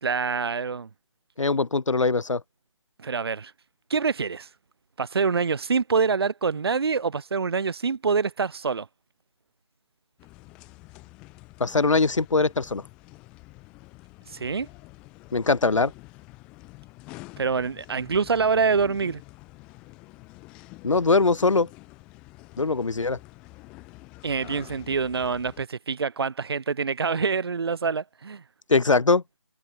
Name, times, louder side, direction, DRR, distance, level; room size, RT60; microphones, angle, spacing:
voice 1, 0.0-0.9 3.0-3.5 3.9-4.5 5.0-8.9 14.3-14.7 17.4-19.2 24.2-28.4, right 5 dB, 55° right, 1.2 m, -25 dB
voice 2, 1.4-2.4 11.6-12.8 15.3-15.9 20.8-21.7 22.6-23.2 28.7-29.2, left 3 dB, 90° left, 0.7 m, -21 dB
sound 1, 10.2-25.7, left 23 dB, 5° left, 0.5 m, -48 dB
figure-of-eight pair, 155°, 16 cm